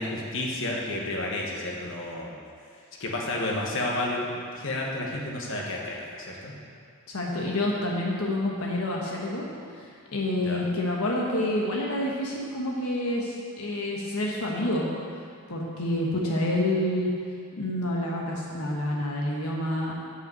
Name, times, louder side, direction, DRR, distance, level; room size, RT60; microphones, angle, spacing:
voice 1, 0.0-2.3 3.0-6.5 10.4-10.7, left 1 dB, 60° left, -2 dB, 1.4 m, -31 dB
voice 2, 7.1-14.9 15.5-17.1 17.6-20.0, left 1 dB, 85° left, -3 dB, 1.2 m, -28 dB
8.1 x 5.7 x 7.8 m, 2.2 s
head